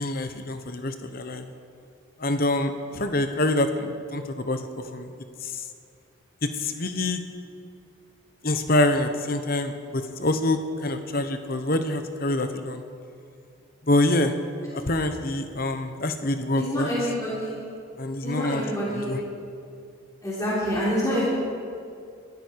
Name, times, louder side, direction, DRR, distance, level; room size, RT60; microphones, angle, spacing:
voice 1, 0.0-1.4 2.2-5.1 5.4-5.6 6.4-7.2 8.4-12.8 13.8-14.3 14.7-16.9 18.0-19.2, left 2 dB, 45° left, 8 dB, 1.0 m, -26 dB
voice 2, 16.6-17.5 18.2-19.1 20.2-21.2, equal, 15° left, -8 dB, 3.9 m, -27 dB
21.5 x 13.5 x 4.7 m, 2.4 s
head